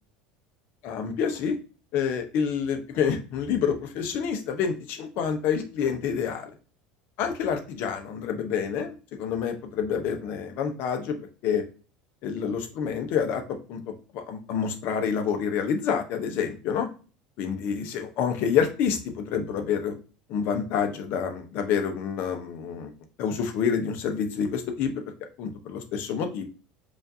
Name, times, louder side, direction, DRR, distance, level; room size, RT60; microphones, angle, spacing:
voice 1, 0.8-1.6 1.9-6.5 7.2-11.2 11.4-11.6 12.2-13.4 13.7-16.9 17.4-19.9 20.3-22.9 23.2-24.9 25.4-26.4, left 7 dB, 60° left, 5 dB, 0.8 m, -28 dB
4.9 x 2.6 x 2.7 m, 0.35 s
supercardioid pair, 100°, 4 cm